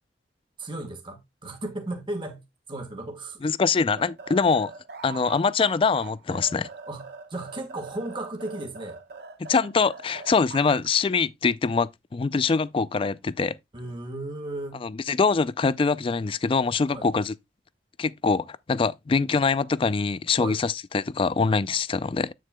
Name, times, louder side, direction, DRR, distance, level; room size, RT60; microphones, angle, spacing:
voice 1, 0.6-2.4 2.7-3.5 6.9-9.0 13.7-14.9 16.9-17.1 20.4-20.6, right 2 dB, 25° right, 1.4 m, -35 dB
voice 2, 3.4-4.7 5.0-6.7 9.5-13.6 14.8-17.3 18.0-22.3, left 4 dB, 30° left, 0.3 m, -24 dB
sound 1, 4.0-10.9, right 4 dB, 60° right, 1.1 m, -42 dB
8.5 x 7.5 x 2.2 m
head